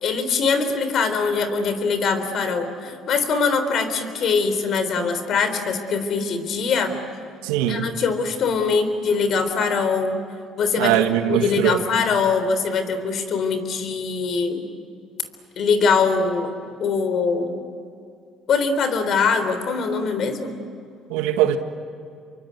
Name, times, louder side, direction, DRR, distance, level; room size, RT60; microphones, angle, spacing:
voice 1, 0.0-6.9 7.7-10.2 10.6-11.0 11.3-14.6 15.6-16.5 16.8-17.6 18.5-20.6, left 5 dB, 60° left, 9 dB, 3.8 m, -22 dB
voice 2, 7.4-7.8 10.8-11.8 21.1-21.6, right 11 dB, 90° right, 7 dB, 1.7 m, -21 dB
28.0 x 24.0 x 8.3 m, 2.4 s
supercardioid pair, 85°, 0 cm